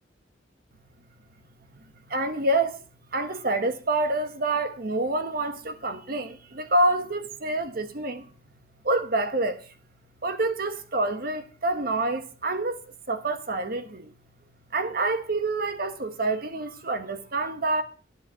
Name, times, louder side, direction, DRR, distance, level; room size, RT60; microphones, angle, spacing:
voice 1, 2.1-2.8 3.1-8.3 8.8-9.6 10.2-12.8 13.1-14.1 14.7-17.8, right 2 dB, 50° right, 1.1 m, -27 dB
11.0 x 7.4 x 7.1 m
head